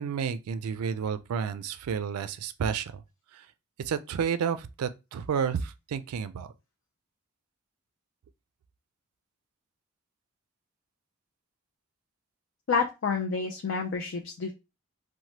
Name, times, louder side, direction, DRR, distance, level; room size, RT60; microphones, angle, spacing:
voice 1, 0.0-3.0 3.3-3.5 3.8-6.5, right 7 dB, 90° right, 0.3 m, -31 dB
voice 2, 12.7-14.5, left 5 dB, 55° left, 0.4 m, -29 dB
3.1 x 2.1 x 2.8 m
head